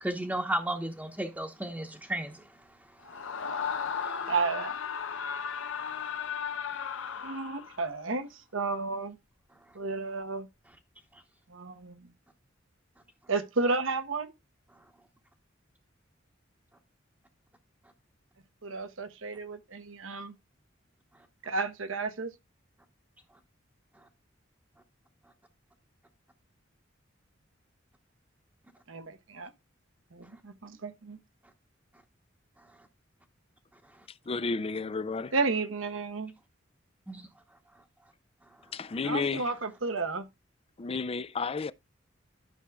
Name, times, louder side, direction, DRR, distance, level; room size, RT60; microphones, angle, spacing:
voice 1, 0.0-2.4 3.6-4.3 37.1-37.3, right 1 dB, 10° right, 1.0 m, -34 dB
Screaming, 3.0-7.9, left 7 dB, 80° left, 0.7 m, -35 dB
voice 2, 4.3-4.7 7.2-9.2 9.7-10.5 11.5-12.1 13.3-14.3 18.6-20.4 21.4-22.3 28.9-29.5 30.1-31.2 35.3-36.3 39.0-40.3, right 3 dB, 85° right, 1.0 m, -32 dB
voice 3, 34.3-35.3 38.7-39.5 40.8-41.7, left 4 dB, 30° left, 0.4 m, -32 dB
12.5 x 6.1 x 2.3 m
head